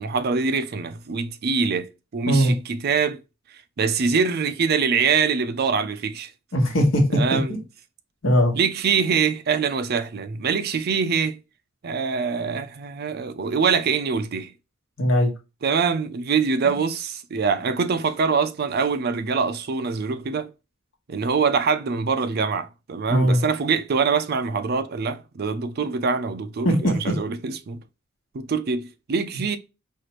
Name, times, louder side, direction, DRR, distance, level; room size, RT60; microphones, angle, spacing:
voice 1, 0.0-3.2 3.8-6.3 7.1-7.6 8.6-11.4 11.8-14.5 15.6-20.5 21.1-27.8 28.3-29.6, right 5 dB, 55° right, 0.4 m, -24 dB
voice 2, 6.5-7.4 8.2-8.5 15.0-15.3 16.6-16.8 23.1-23.4 26.6-26.9, equal, 80° left, 1.3 m, -19 dB
4.6 x 2.5 x 3.0 m
head